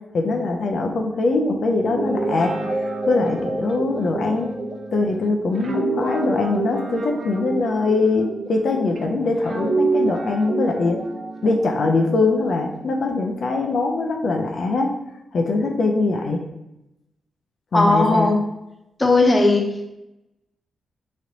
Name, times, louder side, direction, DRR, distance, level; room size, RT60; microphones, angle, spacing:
voice 1, 0.1-4.5 4.9-11.0 11.4-14.9 15.3-16.5 17.7-18.3, left 3 dB, 65° left, 2 dB, 0.4 m, -22 dB
Guitar, 1.8-9.0 9.4-13.1, right 3 dB, 55° right, 0.6 m, -28 dB
voice 2, 17.7-18.4 19.0-19.6, left 2 dB, 20° left, 1 dB, 0.8 m, -16 dB
3.9 x 3.1 x 2.8 m, 0.88 s
cardioid pair, 85°, 0 cm